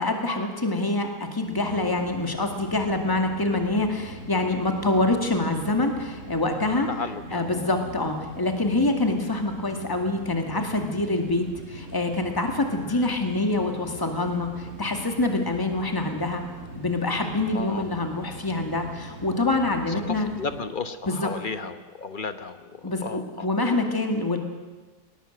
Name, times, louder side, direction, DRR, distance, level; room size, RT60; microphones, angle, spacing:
voice 1, 0.0-6.9 7.3-16.4 16.8-20.3 21.1-21.3 22.8-24.4, left 2 dB, 15° left, 4 dB, 2.1 m, -26 dB
sound 1, 1.5-20.6, right 1 dB, 50° right, 5.7 m, -42 dB
voice 2, 6.9-7.7 12.8-13.2 17.5-17.9 19.9-23.5, left 4 dB, 35° left, 10 dB, 1.1 m, -34 dB
19.0 x 19.0 x 7.9 m, 1.3 s
omnidirectional pair, 1.7 m